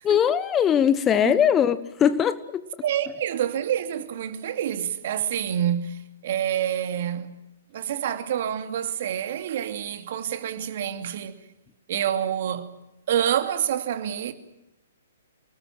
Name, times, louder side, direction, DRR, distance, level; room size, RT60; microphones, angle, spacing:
voice 1, 0.0-2.6, left 8 dB, 20° left, 1.2 m, -21 dB
voice 2, 2.8-7.3 7.7-11.4 11.9-12.7 13.1-14.3, right 10 dB, 50° right, 2.8 m, -27 dB
28.5 x 20.0 x 7.6 m
figure-of-eight pair, 125°, 0 cm